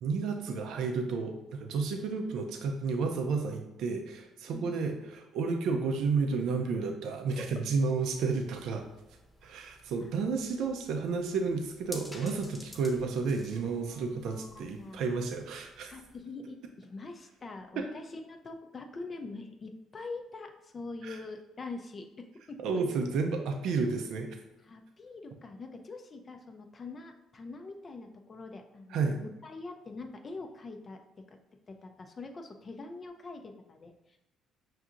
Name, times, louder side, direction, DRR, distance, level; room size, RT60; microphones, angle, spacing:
voice 1, 0.0-8.8 9.4-15.9 17.8-17.9 21.0-21.2 22.6-24.4 28.9-29.2, right 4 dB, 75° right, 4 dB, 0.4 m, -31 dB
voice 2, 7.3-7.6 10.0-10.1 13.5-15.0 15.9-22.9 24.6-31.4 31.7-34.2, left 3 dB, 30° left, 4 dB, 0.3 m, -44 dB
sound 1, 8.0-16.2, left 1 dB, 5° left, 0.9 m, -52 dB
5.8 x 2.7 x 2.4 m, 0.97 s
cardioid pair, 120°, 0 cm